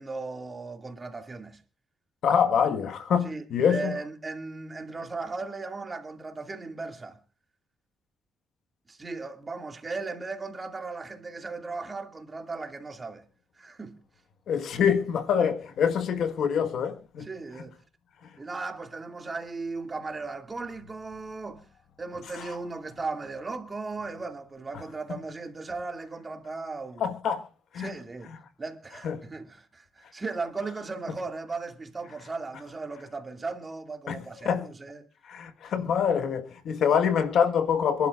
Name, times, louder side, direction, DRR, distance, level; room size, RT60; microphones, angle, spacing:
voice 1, 0.0-1.6 3.2-7.2 8.9-13.2 13.6-14.0 15.4-15.5 17.3-17.8 18.4-21.7 22.0-27.0 27.8-28.3 28.6-35.1 35.7-35.8, right 3 dB, 25° right, 2.3 m, -37 dB
voice 2, 2.2-4.0 14.5-17.3 22.3-22.5 24.7-24.8 27.0-27.4 27.7-27.9 29.0-29.2 34.1-34.7 35.2-38.1, left 7 dB, 70° left, 1.5 m, -25 dB
26.5 x 11.5 x 2.4 m
cardioid pair, 90°, 0 cm